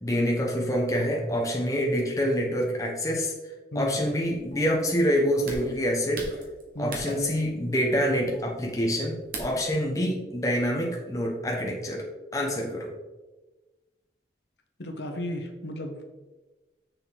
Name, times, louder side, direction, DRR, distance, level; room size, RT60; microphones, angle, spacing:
voice 1, 0.0-3.3 3.7-6.3 6.8-12.1 12.3-12.9, equal, 20° left, -1 dB, 1.1 m, -26 dB
sound 1, 3.8-9.7, right 2 dB, 50° right, 1.5 m, -40 dB
voice 2, 14.8-16.0, left 1 dB, 75° left, 4 dB, 1.0 m, -34 dB
6.7 x 6.3 x 4.0 m, 1.2 s
head